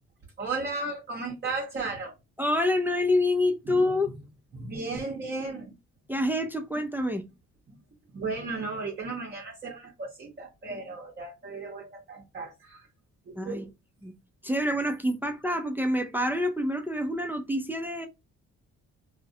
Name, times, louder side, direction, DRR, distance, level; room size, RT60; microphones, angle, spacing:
voice 1, 0.4-2.1 3.7-4.1 4.5-5.7 7.7-7.8 8.1-12.9 13.3-13.7, right 3 dB, 35° right, 0.7 m, -35 dB
voice 2, 2.4-4.1 6.1-7.2 13.4-13.6 14.0-14.1 14.4-18.1, left 1 dB, 5° right, 0.3 m, -27 dB
2.4 x 2.0 x 2.6 m
cardioid pair, 90°, 30 cm